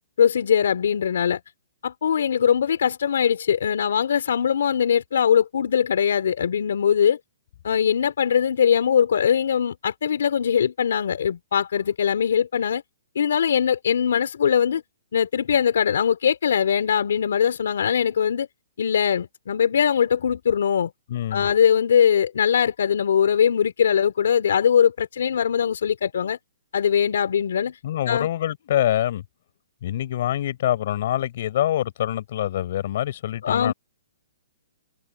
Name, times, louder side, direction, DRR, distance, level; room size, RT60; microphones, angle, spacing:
voice 1, 0.2-1.4 1.8-7.2 7.6-12.8 13.2-14.8 15.1-18.5 18.8-20.9 21.3-26.4 26.7-27.8 28.1-28.3 33.4-33.7, left 8 dB, 75° left, 3.8 m, -21 dB
voice 2, 21.1-21.5 27.8-29.2 29.8-33.7, left 12 dB, 55° left, 5.0 m, -25 dB
hypercardioid pair, 150°, 0 cm